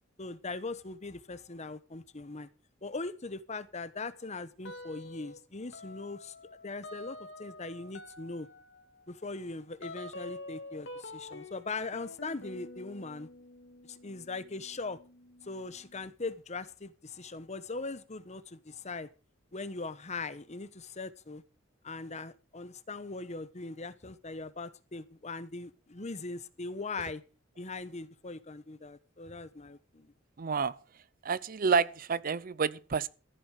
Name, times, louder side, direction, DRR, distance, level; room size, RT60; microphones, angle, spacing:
voice 1, 0.2-2.5 2.8-6.3 6.6-8.5 9.1-13.3 13.9-15.0 15.4-19.1 19.5-21.4 21.8-27.2 27.6-30.1, left 3 dB, 35° left, 1.0 m, -40 dB
sound 1, 4.6-5.4 5.7-16.1, left 2 dB, 65° left, 2.2 m, -48 dB
voice 2, 30.4-30.7 31.2-33.1, right 5 dB, 45° right, 0.6 m, -29 dB
14.5 x 7.9 x 6.4 m
head